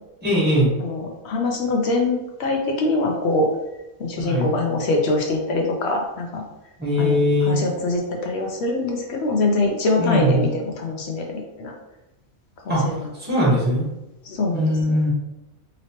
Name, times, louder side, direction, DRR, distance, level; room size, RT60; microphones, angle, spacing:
voice 1, 0.2-0.7 4.2-4.5 6.8-7.6 10.0-10.4 12.7-12.8 13.2-13.9 14.5-15.1, equal, 10° right, -6 dB, 1.2 m, -20 dB
voice 2, 0.8-3.5 4.0-6.4 7.0-7.2 7.4-11.7 12.7-13.1 13.4-13.5 14.2-15.0, left 2 dB, 60° left, 1 dB, 0.7 m, -24 dB
3.0 x 2.9 x 2.9 m, 0.96 s
omnidirectional pair, 1.5 m